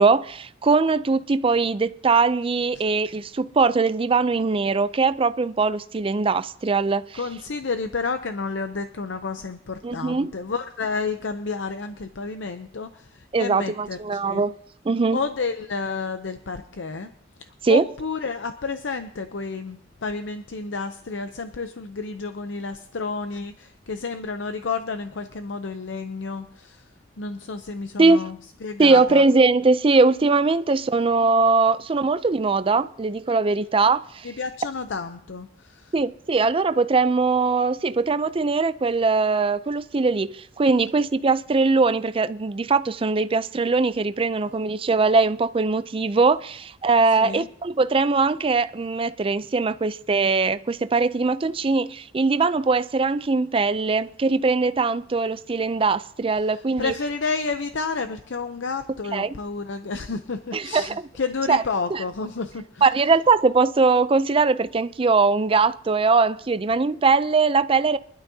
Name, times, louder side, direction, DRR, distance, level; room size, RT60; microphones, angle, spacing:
voice 1, 0.0-7.2 9.8-10.3 13.3-14.5 14.9-15.2 17.6-17.8 28.0-28.3 28.8-34.3 35.9-56.9 59.1-59.3 60.5-60.9 61.5-61.6 61.9-62.0 62.8-68.0, right 4 dB, 30° right, 0.4 m, -21 dB
voice 2, 7.1-14.4 15.1-17.1 17.4-26.9 27.2-29.2 34.2-35.9 47.2-47.5 56.5-62.9, left 4 dB, 85° left, 0.7 m, -31 dB
23.5 x 12.0 x 2.8 m
head